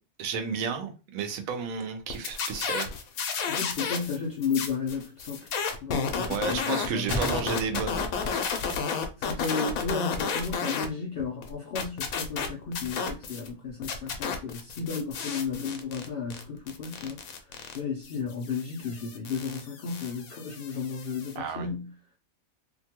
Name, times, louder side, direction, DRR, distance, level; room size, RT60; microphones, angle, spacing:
voice 1, 0.2-2.9 6.3-8.1 21.3-21.7, right 6 dB, 75° right, 1.0 m, -32 dB
sound 1, 2.1-4.2 4.4-10.9 11.2-13.5 13.8-21.3, left 6 dB, 85° left, 1.0 m, -32 dB
voice 2, 3.5-5.5 5.8-7.2 9.2-17.2 17.7-21.9, left 5 dB, 65° left, 0.6 m, -33 dB
Gunshot gunfire, 7.1-9.1 9.4-9.5 10.2-10.4, equal, 25° right, 0.6 m, -35 dB
2.8 x 2.2 x 2.8 m
omnidirectional pair, 1.5 m